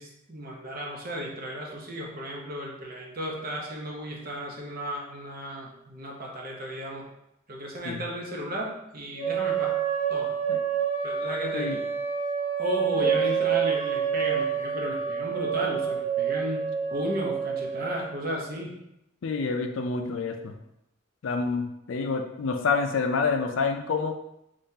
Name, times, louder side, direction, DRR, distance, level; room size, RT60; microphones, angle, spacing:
voice 1, 0.0-7.0 7.5-9.7 10.1-10.3 11.0-11.8 12.6-18.7, equal, 45° right, -1 dB, 0.8 m, -34 dB
sound 1, 9.2-18.1, right 8 dB, 35° left, 0.8 m, -28 dB
voice 2, 19.2-20.5 21.2-24.1, left 4 dB, 75° left, 5 dB, 0.4 m, -28 dB
3.7 x 3.2 x 2.7 m, 0.83 s
head